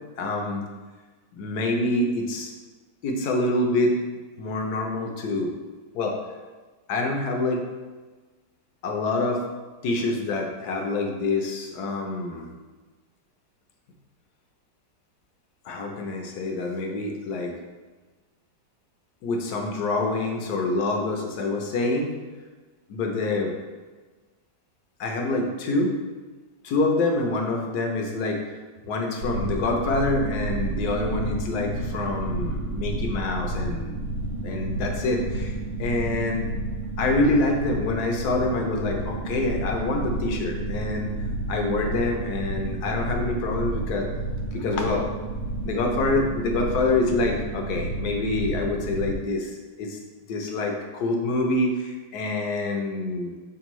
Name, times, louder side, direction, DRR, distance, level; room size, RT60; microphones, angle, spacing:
voice 1, 0.2-0.7 1.3-2.5 3.0-3.9 4.4-5.5 5.9-6.2 6.9-7.6 8.8-9.5 9.8-12.5 15.6-17.5 19.2-22.1 22.9-23.5 25.0-26.0 26.6-28.4 28.8-34.0 34.4-36.5 37.0-41.1 41.5-44.1 44.5-45.1 45.6-50.0 50.3-53.3, left 2 dB, 70° left, 2 dB, 1.2 m, -26 dB
sound 1, 29.2-49.1, right 2 dB, 75° right, 1.2 m, -30 dB
4.8 x 3.5 x 3.0 m, 1.3 s
omnidirectional pair, 1.8 m